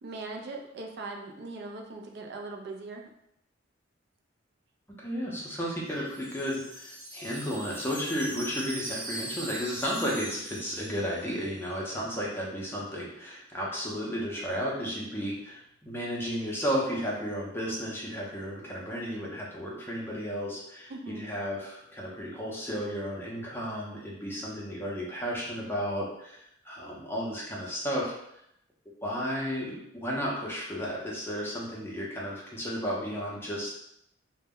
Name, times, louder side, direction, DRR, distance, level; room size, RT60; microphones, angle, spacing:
voice 1, 0.0-3.1 20.9-21.2, right 3 dB, 60° right, 2 dB, 0.3 m, -40 dB
voice 2, 5.0-28.1 29.0-33.7, equal, 10° left, -4 dB, 0.5 m, -33 dB
Wind chime, 5.7-11.6, right 1 dB, 25° right, 0.8 m, -41 dB
2.1 x 2.1 x 3.5 m, 0.76 s
head